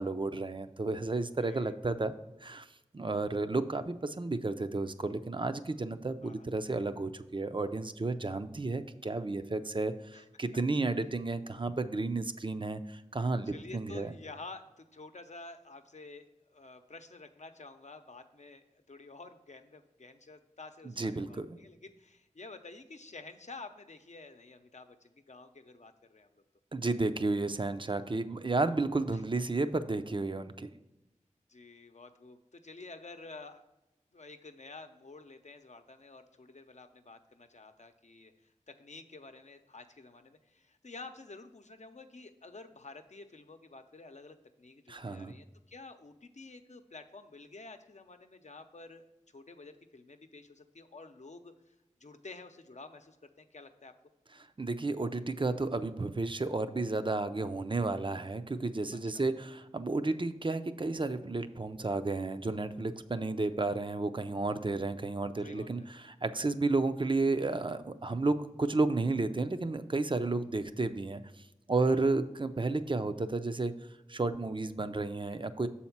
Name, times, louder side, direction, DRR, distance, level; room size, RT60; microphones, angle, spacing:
voice 1, 0.0-2.1 2.4-2.6 2.9-14.1 20.9-21.6 26.7-30.7 44.9-45.3 54.6-71.2 71.7-73.7 74.1-75.7, right 3 dB, 40° right, 10 dB, 0.5 m, -32 dB
voice 2, 1.4-1.7 6.2-6.5 10.1-10.2 13.4-26.4 29.1-29.2 31.5-33.6 34.1-38.3 38.7-49.1 49.3-51.7 52.0-53.9 59.1-59.2 65.4-65.9 71.8-72.1, left 3 dB, 65° left, 7 dB, 0.7 m, -50 dB
7.0 x 4.3 x 5.8 m, 0.98 s
wide cardioid pair, 45°, 13 cm